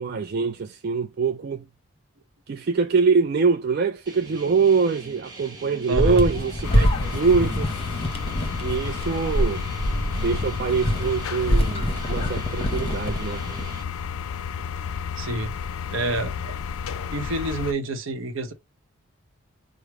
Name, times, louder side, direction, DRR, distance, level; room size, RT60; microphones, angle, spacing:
voice 1, 0.0-1.6 2.5-7.7 8.6-9.7 10.1-13.7, right 5 dB, 45° right, 0.3 m, -24 dB
sound 1, 4.1-13.8, right 2 dB, 20° right, 1.1 m, -43 dB
sound 2, 5.9-13.7, equal, 25° left, 0.7 m, -26 dB
voice 2, 5.9-6.3 15.2-15.5 15.9-16.6 17.1-18.5, right 2 dB, 65° right, 0.8 m, -28 dB
sound 3, 6.6-17.7, left 7 dB, 80° left, 0.4 m, -32 dB
5.0 x 2.0 x 4.7 m
head